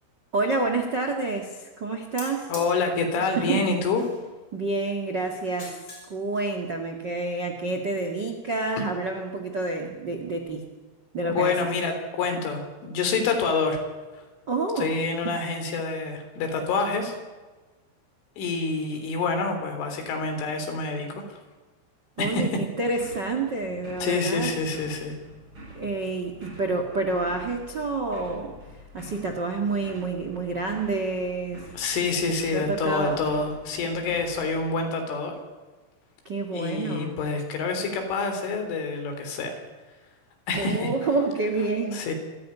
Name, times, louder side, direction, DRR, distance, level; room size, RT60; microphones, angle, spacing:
voice 1, 0.3-2.5 3.3-3.6 4.5-10.6 11.1-11.5 14.5-15.0 22.2-24.5 25.7-28.5 28.9-31.6 32.5-33.2 36.2-37.2 40.5-42.0, right 3 dB, 60° right, 5 dB, 1.1 m, -28 dB
sound 1, 2.2-2.7 4.0-4.4 5.4-6.1 6.4-6.5, left 2 dB, 20° left, 5.8 m, -41 dB
voice 2, 2.5-4.0 11.3-13.8 14.8-17.1 18.4-21.4 22.2-22.6 24.0-25.2 31.7-35.4 36.5-39.6 40.5-40.9 41.9-42.1, left 4 dB, 70° left, 6 dB, 6.0 m, -27 dB
sound 2, 22.8-34.7, equal, 25° right, 6.9 m, -47 dB
26.0 x 15.0 x 9.8 m, 1.3 s
omnidirectional pair, 5.8 m